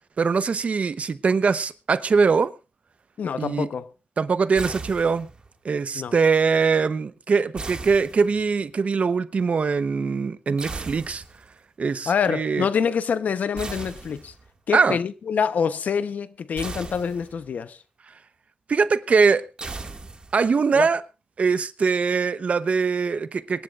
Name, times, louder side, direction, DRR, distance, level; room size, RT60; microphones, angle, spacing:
voice 1, 0.2-2.5 3.4-3.7 4.2-5.3 5.6-11.2 11.8-12.7 14.7-15.0 18.7-19.5 20.3-21.0 21.4-23.6, right 5 dB, 50° right, 0.9 m, -22 dB
voice 2, 3.2-3.9 5.9-6.1 12.1-14.3 14.7-17.8 20.7-20.9, left 6 dB, 70° left, 0.9 m, -26 dB
sound 1, 4.6-5.5 7.6-8.7 10.6-11.5 13.6-14.6 16.6-17.5 19.6-20.6, right 3 dB, 35° right, 2.0 m, -37 dB
25.0 x 11.0 x 2.5 m
cardioid pair, 90°, 3 cm